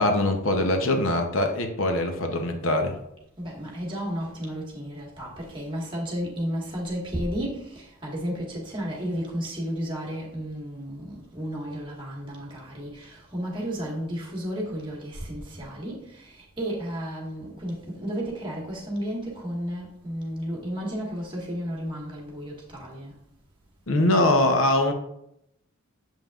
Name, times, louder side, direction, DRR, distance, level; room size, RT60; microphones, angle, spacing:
voice 1, 0.0-3.0 23.9-24.9, left 1 dB, 70° left, 5 dB, 0.8 m, -22 dB
voice 2, 3.4-7.6 8.0-12.9 13.3-16.0 16.6-23.1, equal, 25° right, -4 dB, 1.6 m, -32 dB
7.3 x 5.4 x 2.4 m, 0.78 s
head